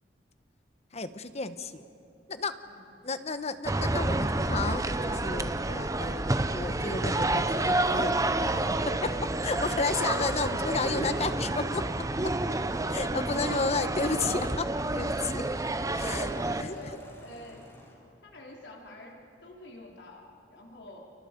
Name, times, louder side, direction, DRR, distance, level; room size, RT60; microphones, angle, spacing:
voice 1, 0.9-1.8 2.3-2.6 3.0-8.1 8.5-11.9 12.9-15.4 16.0-16.7, left 3 dB, 40° left, 11 dB, 1.1 m, -32 dB
sound 1, 3.6-16.6, right 2 dB, 20° right, 0.8 m, -29 dB
Motorcycle / Engine, 12.1-17.9, equal, 15° left, 7.7 m, -52 dB
voice 2, 13.2-13.7 15.9-17.6 18.2-21.1, left 1 dB, 80° left, 0 dB, 3.9 m, -46 dB
30.0 x 29.5 x 5.3 m, 2.9 s
head